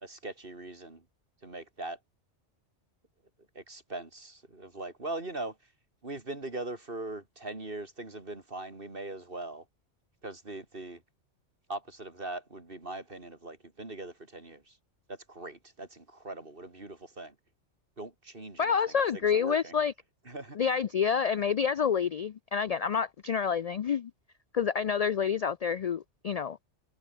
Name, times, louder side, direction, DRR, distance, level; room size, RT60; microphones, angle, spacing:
voice 1, 0.0-1.0 1.4-2.0 3.6-5.6 6.0-9.6 10.2-11.0 11.7-14.8 15.1-17.4 18.0-19.8 20.3-20.6, right 2 dB, 50° right, 3.9 m, -41 dB
voice 2, 18.6-19.9 20.6-24.1 24.5-26.6, left 7 dB, 75° left, 0.3 m, -28 dB
omnidirectional pair, 1.2 m